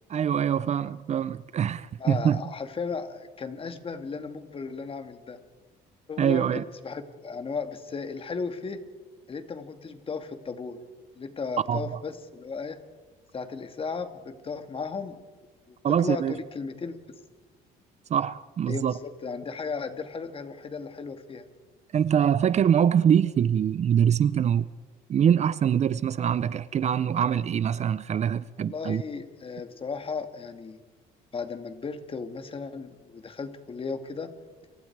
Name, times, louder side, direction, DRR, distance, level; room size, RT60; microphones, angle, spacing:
voice 1, 0.1-2.4 6.2-6.6 11.7-12.0 15.8-16.4 18.1-18.9 21.9-24.7 25.1-29.0, right 8 dB, 40° right, 0.6 m, -24 dB
voice 2, 2.0-5.4 6.1-8.8 9.3-10.8 11.2-12.8 13.3-15.2 15.7-17.0 18.7-21.5 28.6-30.8 31.3-34.3, left 5 dB, 35° left, 2.2 m, -35 dB
30.0 x 24.5 x 4.8 m
cardioid pair, 110°, 17 cm